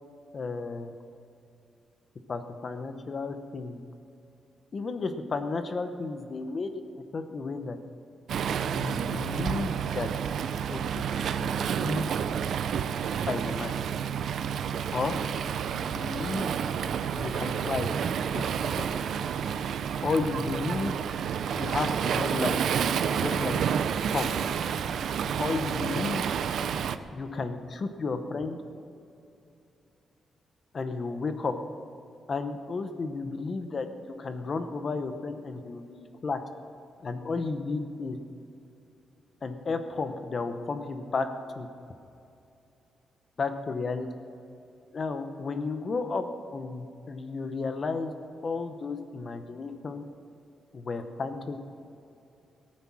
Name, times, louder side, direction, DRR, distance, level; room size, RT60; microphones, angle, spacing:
voice 1, 0.3-0.9 2.3-3.8 4.7-7.8 8.7-10.1 10.7-12.0 13.3-13.7 14.9-15.2 15.7-16.6 17.1-17.9 18.3-18.5 18.8-19.0 20.0-21.0 21.5-22.6 23.2-23.6 24.1-24.3 25.4-26.2 27.1-28.6 30.7-31.6 32.3-33.9 34.2-36.4 37.0-38.2 39.4-41.3 41.6-41.7 43.4-44.1 44.9-46.2 46.5-48.1 48.4-50.0 50.7-51.6, left 4 dB, 35° left, 8 dB, 0.9 m, -33 dB
Waves surf, 8.3-27.0, right 8 dB, 65° right, 0.5 m, -30 dB
18.0 x 9.7 x 6.1 m, 2.7 s
wide cardioid pair, 170°, 0 cm